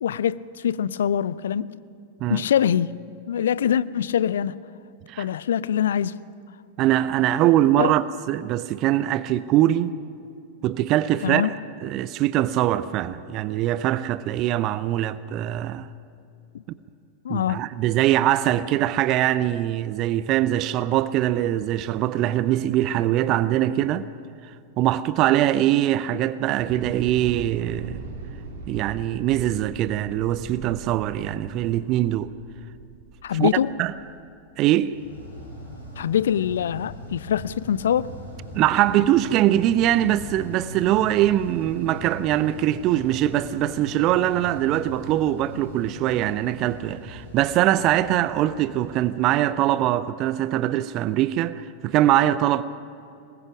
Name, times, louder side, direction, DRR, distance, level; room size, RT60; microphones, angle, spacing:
voice 1, 0.0-1.7 2.3-3.0 3.3-4.5 5.2-6.2 7.8-7.9 11.2-11.5 16.5-16.6 17.2-17.6 33.2-33.7 36.0-38.1, left 9 dB, 65° left, 0.5 m, -24 dB
voice 2, 6.8-9.9 10.6-11.5 11.8-15.9 17.3-24.1 24.8-28.0 28.7-32.3 33.3-33.5 33.8-33.9 34.6-34.9 38.5-52.6, right 13 dB, 40° right, 0.6 m, -22 dB
Thunder / Explosion, 26.5-34.8, right 4 dB, 55° right, 2.9 m, -40 dB
sound 1, 34.9-49.9, equal, 80° left, 6.3 m, -40 dB
23.0 x 20.5 x 6.1 m
figure-of-eight pair, 90°, 0 cm